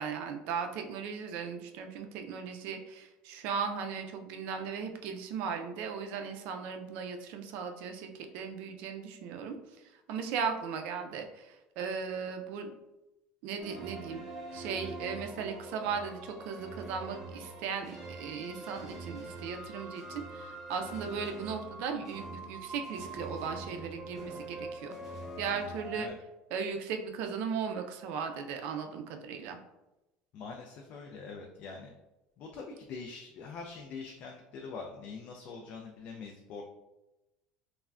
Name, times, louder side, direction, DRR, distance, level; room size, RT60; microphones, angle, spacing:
voice 1, 0.0-9.6 10.1-12.7 13.4-14.2 14.5-25.0 25.4-26.1 26.5-29.6, right 6 dB, 65° right, 5 dB, 0.4 m, -37 dB
sound 1, 13.6-26.1, right 2 dB, 10° right, 0.7 m, -44 dB
voice 2, 30.3-31.9 32.4-36.6, left 4 dB, 50° left, 1 dB, 0.3 m, -44 dB
3.3 x 2.1 x 2.4 m, 0.97 s
cardioid pair, 140°, 3 cm